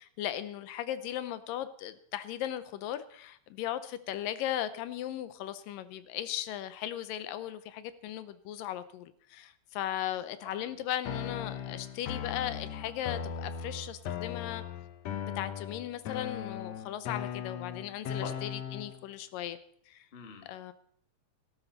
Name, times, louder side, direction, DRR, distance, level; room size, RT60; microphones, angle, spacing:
voice 1, 0.0-14.6 15.2-19.6 19.9-20.1 20.5-20.7, left 12 dB, 80° left, 13 dB, 2.4 m, -37 dB
voice 2, 10.4-10.8 18.2-18.4 20.1-20.7, left 5 dB, 25° left, 5 dB, 1.4 m, -45 dB
sound 1, 11.0-19.0, left 8 dB, 65° left, 1.8 m, -38 dB
17.5 x 13.0 x 4.0 m, 0.62 s
omnidirectional pair, 4.0 m